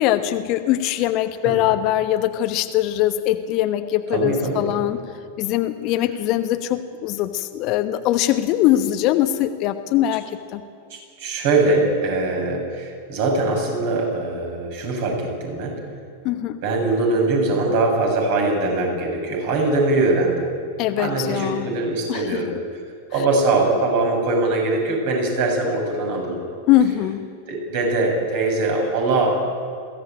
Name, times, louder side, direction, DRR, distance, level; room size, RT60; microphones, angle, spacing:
voice 1, 0.0-5.0 5.4-10.2 10.5-10.6 16.2-16.6 20.8-21.7 22.1-22.4 26.7-27.3, left 13 dB, 40° left, 9 dB, 1.1 m, -21 dB
voice 2, 4.1-4.7 10.9-15.8 16.6-20.5 21.0-22.6 23.1-26.4 27.5-29.5, right 2 dB, 50° right, 1 dB, 7.4 m, -22 dB
22.0 x 16.5 x 9.0 m, 2.4 s
figure-of-eight pair, 90°, 0 cm